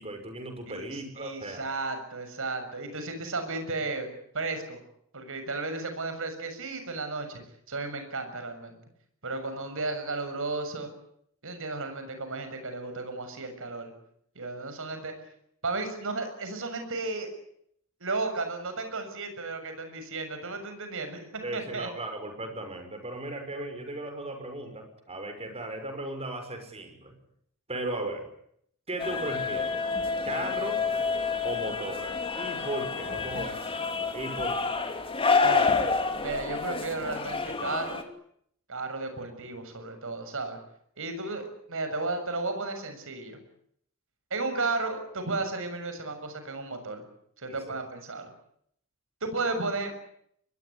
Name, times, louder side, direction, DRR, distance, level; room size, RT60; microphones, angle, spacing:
voice 1, 0.0-1.7 21.4-27.1 27.7-28.3 28.9-29.8 30.2-30.8 31.4-33.8 34.1-34.7 47.5-47.8, right 2 dB, 30° right, 7 dB, 6.2 m, -36 dB
voice 2, 0.7-4.1 4.3-4.8 5.1-7.4 7.7-8.8 9.2-10.9 11.4-13.9 14.4-15.1 15.6-17.3 18.0-21.9 35.4-35.8 36.2-38.0 38.7-40.6 41.0-43.4 44.3-47.0 47.4-48.3 49.2-49.9, right 3 dB, 65° right, 8 dB, 6.9 m, -34 dB
sound 1, 29.0-38.0, left 4 dB, 25° left, 2.8 m, -28 dB
24.5 x 21.5 x 9.9 m, 0.70 s
head